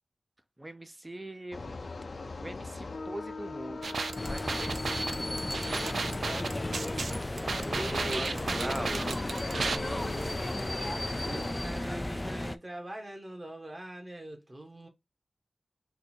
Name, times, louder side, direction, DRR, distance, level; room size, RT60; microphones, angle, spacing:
voice 1, 0.6-1.7 2.4-4.0 4.2-9.8 11.8-12.6, right 1 dB, 20° right, 0.6 m, -43 dB
sound 1, 1.5-11.5, left 3 dB, 60° left, 0.6 m, -40 dB
sound 2, 3.8-9.8, right 4 dB, 80° right, 0.4 m, -34 dB
sound 3, 4.2-12.6, left 1 dB, 20° left, 0.3 m, -35 dB
voice 2, 7.7-8.9 9.5-10.8 11.2-14.9, right 1 dB, 35° right, 1.4 m, -41 dB
3.9 x 2.6 x 4.4 m
wide cardioid pair, 80°, 0 cm